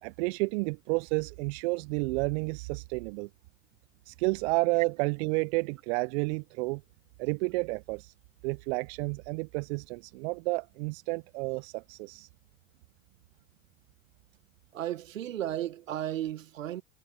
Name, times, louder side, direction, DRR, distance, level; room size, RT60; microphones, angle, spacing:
voice 1, 0.0-3.3 4.1-6.8 7.2-8.1 8.4-12.3, right 26 dB, 60° right, 0.5 m, -31 dB
voice 2, 14.7-16.8, right 12 dB, 85° right, 1.5 m, -34 dB
hypercardioid pair, 90°, 39 cm